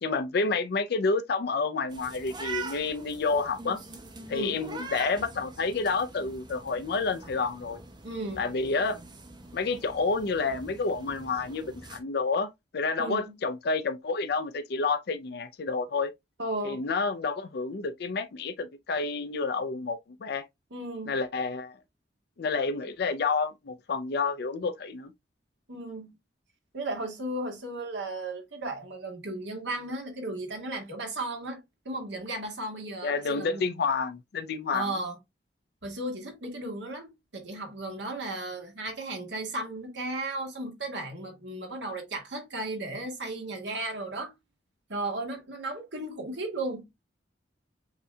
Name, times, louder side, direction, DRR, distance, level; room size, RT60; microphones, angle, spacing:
voice 1, 0.0-3.8 4.3-7.8 8.4-9.0 9.5-16.1 16.6-20.4 21.1-21.7 22.4-25.1 33.0-34.9, left 4 dB, 60° left, 0.4 m, -29 dB
sound 1, 1.9-12.0, right 4 dB, 25° right, 0.9 m, -44 dB
voice 2, 8.0-8.5 13.0-13.4 16.4-16.8 20.7-21.2 25.7-26.1 26.7-31.6 31.8-33.6 34.7-35.2 35.8-44.3 44.9-46.9, right 2 dB, 80° right, 1.7 m, -35 dB
7.9 x 2.7 x 2.2 m
head